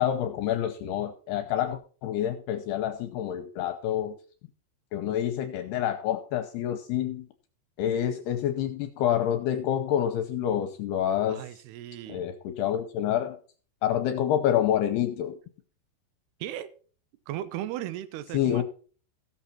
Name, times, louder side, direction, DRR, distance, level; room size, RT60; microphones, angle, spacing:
voice 1, 0.0-4.2 4.9-7.3 7.8-11.4 12.1-13.4 13.8-15.4 18.3-18.6, left 10 dB, 75° left, 6 dB, 2.7 m, -27 dB
voice 2, 11.3-12.3 16.4-16.7 17.3-18.6, right 12 dB, 75° right, 13 dB, 2.7 m, -36 dB
16.0 x 7.1 x 4.3 m, 0.40 s
omnidirectional pair, 5.2 m